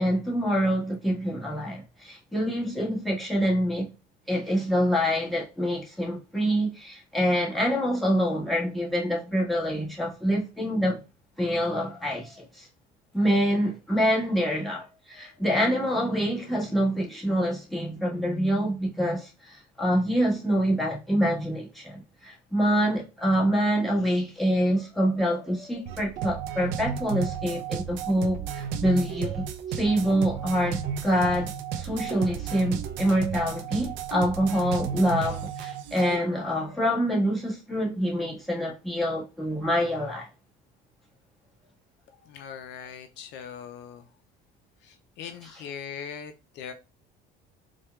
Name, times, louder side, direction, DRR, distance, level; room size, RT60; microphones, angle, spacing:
voice 1, 0.0-3.9 4.3-11.0 11.4-12.7 13.1-29.4 29.7-40.3, equal, ahead, 1.3 m, -26 dB
sound 1, 25.9-36.2, right 8 dB, 75° right, 0.5 m, -33 dB
voice 2, 42.3-44.1 44.8-46.7, left 7 dB, 65° left, 0.4 m, -40 dB
4.3 x 2.2 x 2.2 m
supercardioid pair, 100°, 20 cm